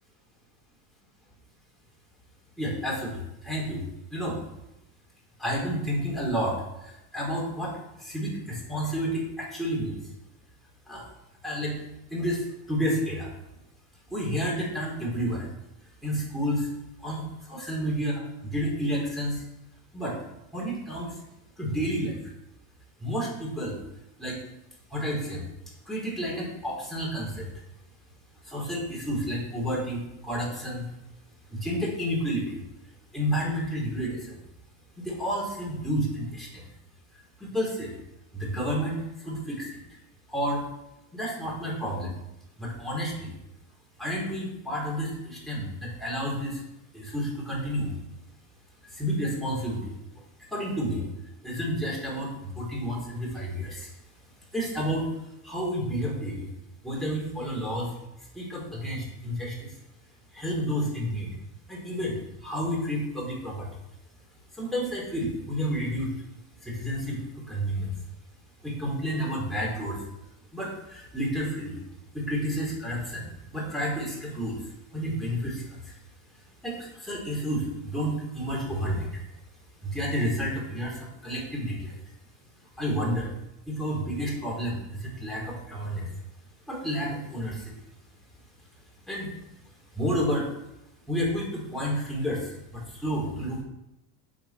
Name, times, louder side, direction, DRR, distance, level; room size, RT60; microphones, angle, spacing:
voice 1, 2.6-3.8 4.1-4.4 5.4-10.0 10.9-11.0 11.4-11.8 12.1-13.3 14.1-15.5 16.0-16.7 17.0-19.4 19.9-20.2 20.5-21.2 21.6-22.3 23.0-23.8 24.2-24.4 24.9-25.4 25.9-27.5 28.4-30.9 31.5-32.6 33.1-34.4 35.0-36.7 37.4-38.0 38.3-39.8 40.3-40.7 41.1-42.1 42.6-43.3 44.0-46.6 46.9-47.9 48.9-49.9 50.5-51.1 51.4-53.9 54.5-55.1 55.4-56.5 56.8-57.9 58.3-59.7 60.3-61.3 61.7-63.7 64.5-66.1 66.6-67.9 68.6-70.0 70.5-71.8 72.1-74.6 74.9-75.9 76.6-79.1 79.8-81.9 82.8-83.3 83.7-86.0 86.7-87.7 89.1-89.3 89.9-90.5 91.1-93.6, equal, ahead, -5 dB, 4.8 m, -30 dB
9.0 x 8.2 x 6.4 m, 0.89 s
cardioid pair, 130°, 45 cm